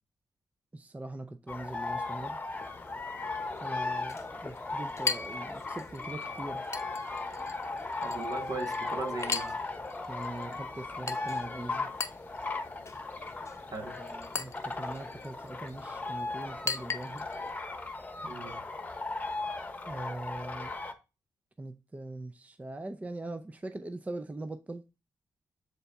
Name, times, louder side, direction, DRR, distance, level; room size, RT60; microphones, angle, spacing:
voice 1, 0.7-2.4 3.6-6.7 10.1-11.9 14.0-17.3 19.9-20.7 21.6-24.8, right 2 dB, 20° right, 0.5 m, -41 dB
sound 1, 1.5-20.9, left 3 dB, 20° left, 1.0 m, -37 dB
Chink clink, 2.5-17.5, left 4 dB, 40° left, 0.7 m, -41 dB
voice 2, 8.0-9.6 13.7-14.0 18.2-18.6, right 3 dB, 55° right, 1.2 m, -38 dB
7.0 x 4.0 x 3.5 m
cardioid pair, 70°, 7 cm